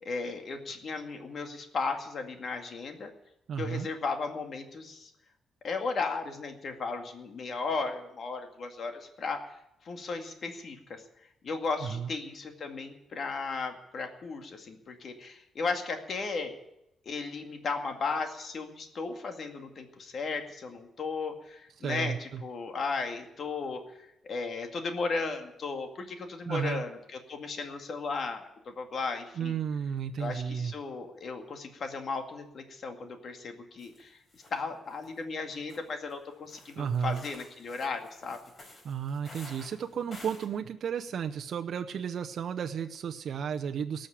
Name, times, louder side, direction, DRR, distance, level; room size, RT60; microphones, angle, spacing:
voice 1, 0.0-3.1 3.6-5.1 5.6-9.4 9.8-11.0 11.4-16.6 17.1-29.6 30.2-34.2 34.5-38.4, left 4 dB, 55° left, 5 dB, 2.1 m, -35 dB
voice 2, 3.5-3.9 11.8-12.1 21.8-22.4 26.5-26.8 29.4-30.7 36.8-37.2 38.8-44.1, right 7 dB, 65° right, 5 dB, 0.7 m, -33 dB
sound 1, 33.8-34.0 34.3-34.6 34.9-35.1 35.5-40.5, left 2 dB, 35° left, 4.5 m, -51 dB
18.5 x 6.5 x 9.9 m, 0.86 s
cardioid pair, 95°, 0 cm